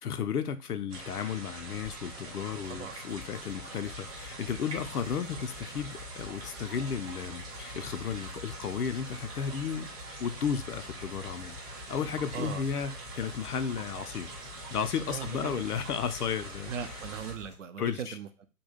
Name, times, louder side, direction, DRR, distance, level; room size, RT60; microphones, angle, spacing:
voice 1, 0.0-9.9 10.2-11.6 11.9-14.3 14.7-16.7 17.8-18.2, left 7 dB, 80° left, 9 dB, 0.5 m, -34 dB
sound 1, 0.9-17.3, right 2 dB, 25° right, 1.0 m, -44 dB
sound 2, 2.2-17.6, left 3 dB, 5° right, 0.7 m, -49 dB
voice 2, 12.3-12.6 15.1-15.6 16.7-18.5, right 7 dB, 55° right, 8 dB, 0.6 m, -39 dB
2.8 x 2.2 x 3.4 m, 0.32 s
figure-of-eight pair, 125°, 46 cm